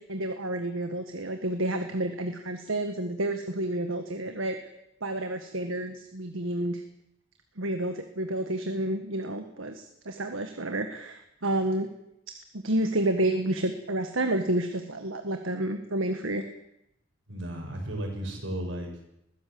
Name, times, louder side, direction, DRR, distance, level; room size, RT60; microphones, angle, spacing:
voice 1, 0.0-4.6 5.0-6.8 7.6-11.9 12.6-16.4, right 1 dB, 90° right, 7 dB, 1.6 m, -30 dB
voice 2, 17.3-19.1, right 1 dB, 75° right, 2 dB, 6.6 m, -34 dB
21.0 x 15.5 x 7.9 m, 0.83 s
head